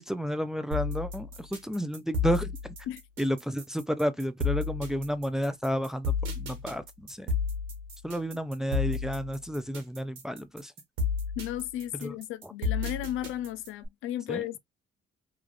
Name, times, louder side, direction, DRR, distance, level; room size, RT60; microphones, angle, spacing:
voice 1, 0.0-2.7 3.2-7.3 8.0-10.7 12.0-12.1 12.4-12.5 14.3-14.5, equal, 5° right, 0.4 m, -31 dB
sound 1, 0.7-13.9, left 4 dB, 90° right, 1.4 m, -32 dB
voice 2, 11.4-14.6, left 12 dB, 85° left, 0.4 m, -34 dB
3.3 x 2.4 x 2.3 m
cardioid pair, 90°, 20 cm